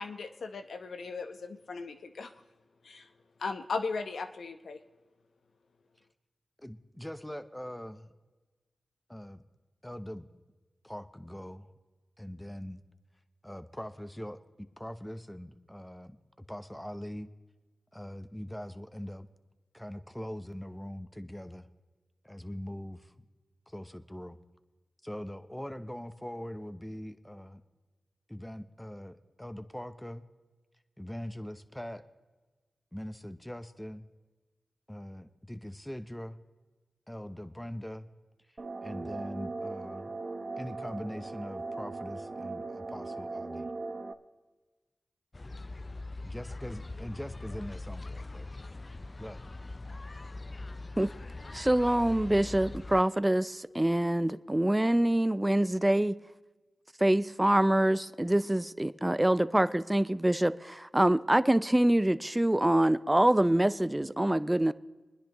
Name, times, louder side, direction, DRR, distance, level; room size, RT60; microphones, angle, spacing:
voice 1, 0.0-2.3 2.8-3.1 3.4-4.8, left 4 dB, 75° left, 0.9 m, -37 dB
voice 2, 6.6-8.1 9.1-9.4 9.8-10.3 10.8-11.7 12.2-12.8 13.4-17.3 17.9-19.3 19.7-21.7 22.2-23.1 23.7-24.4 25.0-27.6 28.3-30.2 31.0-32.0 32.9-34.1 34.9-36.4 37.1-38.1 38.5-40.1 40.6-43.7 46.2-48.5 49.2-49.4, equal, 10° left, 0.8 m, -42 dB
sound 1, 38.6-44.1, right 3 dB, 45° right, 0.8 m, -39 dB
sound 2, 45.3-53.0, left 2 dB, 40° left, 0.4 m, -42 dB
voice 3, 51.5-56.2 57.0-64.7, right 1 dB, 15° right, 0.5 m, -25 dB
24.0 x 10.0 x 3.0 m
cardioid pair, 40°, 0 cm